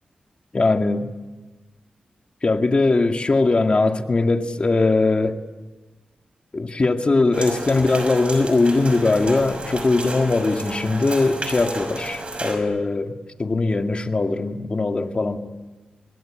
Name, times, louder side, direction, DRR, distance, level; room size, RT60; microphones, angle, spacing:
voice 1, 0.5-1.1 2.4-5.4 6.5-15.4, left 3 dB, 40° left, 2.0 m, -20 dB
sound 1, 7.3-12.6, right 2 dB, 40° right, 5.9 m, -32 dB
25.5 x 20.0 x 8.9 m
cardioid pair, 70°, 3 cm